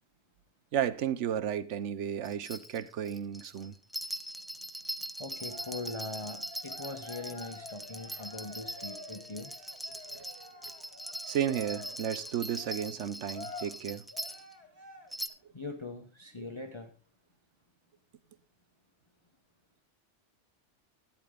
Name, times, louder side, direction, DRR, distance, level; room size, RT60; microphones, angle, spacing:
voice 1, 0.7-3.8 10.1-10.2 11.2-14.1 16.4-16.5, right 9 dB, 75° right, 1.1 m, -33 dB
sound 1, 2.2-14.5 15.1-15.3, equal, ahead, 0.4 m, -42 dB
voice 2, 5.2-9.5 15.5-16.9, left 3 dB, 25° left, 1.0 m, -41 dB
Cheering, 5.3-15.3, left 3 dB, 20° right, 3.4 m, -49 dB
12.0 x 10.5 x 3.7 m
omnidirectional pair, 1.2 m